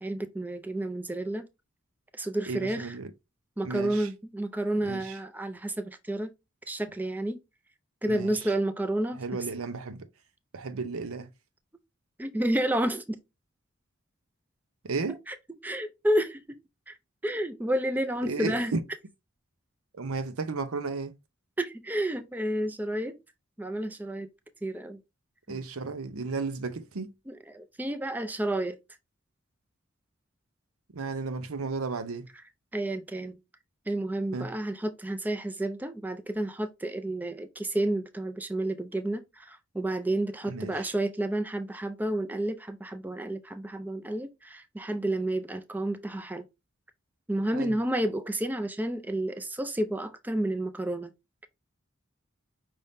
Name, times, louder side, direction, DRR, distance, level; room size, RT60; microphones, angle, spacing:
voice 1, 0.0-1.5 2.2-3.0 3.6-6.3 6.7-7.4 8.0-9.2 12.2-13.2 15.3-15.4 15.6-16.6 16.9-17.0 17.2-18.7 21.6-23.2 23.6-24.3 24.6-25.0 25.5-25.6 27.3-28.8 32.7-33.4 33.9-46.4 47.3-51.1, right 1 dB, 10° right, 0.4 m, -30 dB
voice 2, 2.5-3.1 3.6-4.1 4.8-5.2 8.1-8.3 9.2-10.1 10.5-11.3 14.8-15.2 18.3-18.8 19.9-21.1 25.5-27.1 30.9-32.3 34.3-34.5 40.4-40.9 47.5-47.7, right 4 dB, 90° right, 0.7 m, -34 dB
5.4 x 2.6 x 3.4 m
head